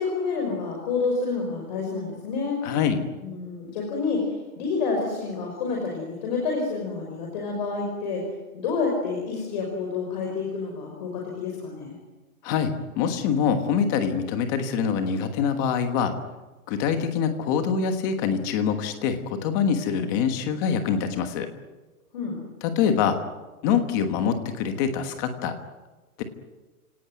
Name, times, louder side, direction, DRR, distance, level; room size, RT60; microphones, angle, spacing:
voice 1, 0.0-2.8 3.2-8.2 8.5-11.9 22.1-22.4, left 4 dB, 30° left, 0 dB, 5.5 m, -28 dB
voice 2, 2.6-3.0 12.4-16.1 16.7-21.5 22.6-23.2 23.6-25.5 26.2-26.3, left 7 dB, 15° left, 8 dB, 1.3 m, -25 dB
30.0 x 18.0 x 9.5 m, 1.2 s
hypercardioid pair, 175°, 44 cm